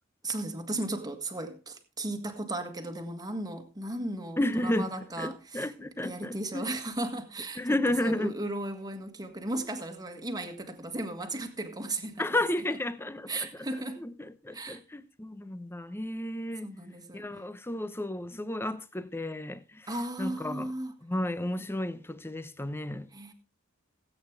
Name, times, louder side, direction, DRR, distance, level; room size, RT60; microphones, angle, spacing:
voice 1, 0.2-5.7 6.0-12.3 13.3-14.0 14.5-14.8 16.6-17.2 19.9-20.9 23.1-23.3, right 2 dB, 20° right, 1.6 m, -36 dB
voice 2, 4.4-6.6 7.6-8.3 12.2-16.7 17.1-19.9 20.2-20.7 21.0-23.1, left 1 dB, 10° left, 0.7 m, -32 dB
17.5 x 8.7 x 3.4 m
head